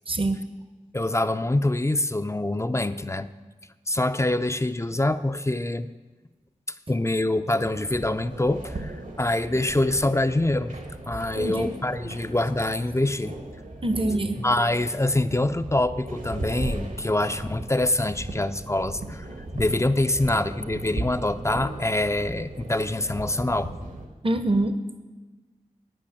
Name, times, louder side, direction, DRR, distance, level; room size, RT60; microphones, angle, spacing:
voice 1, 0.1-0.4 11.4-11.7 13.8-14.4 24.2-24.7, right 2 dB, 40° right, 9 dB, 0.8 m, -24 dB
voice 2, 0.9-3.3 3.9-5.9 6.9-10.7 11.1-13.3 14.4-19.3 19.5-23.7, left 1 dB, 20° left, 11 dB, 0.5 m, -25 dB
sound 1, 7.6-24.1, right 2 dB, 70° right, 1.6 m, -37 dB
11.0 x 5.6 x 8.7 m, 1.2 s
cardioid pair, 40°, 14 cm